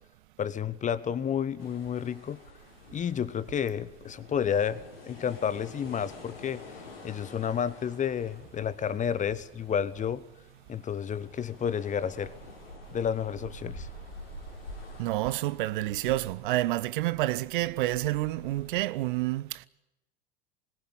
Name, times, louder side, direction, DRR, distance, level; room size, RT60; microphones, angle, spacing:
voice 1, 0.4-2.4 2.9-6.6 7.0-10.2 10.7-12.3 12.9-13.9, left 8 dB, 25° left, 1.1 m, -31 dB
sound 1, 1.6-18.8, left 1 dB, 80° left, 3.7 m, -48 dB
voice 2, 15.0-19.7, right 17 dB, 60° right, 0.7 m, -29 dB
21.0 x 19.0 x 8.9 m
figure-of-eight pair, 75°, 29 cm